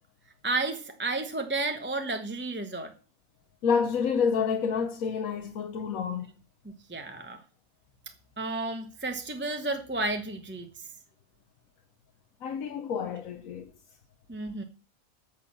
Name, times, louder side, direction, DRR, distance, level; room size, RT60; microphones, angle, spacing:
voice 1, 0.4-2.9 6.9-7.4 8.4-10.7 14.3-14.6, right 2 dB, 10° right, 0.8 m, -32 dB
voice 2, 3.6-6.3 12.4-13.7, left 6 dB, 70° left, 1.3 m, -28 dB
10.5 x 6.6 x 7.3 m
omnidirectional pair, 1.5 m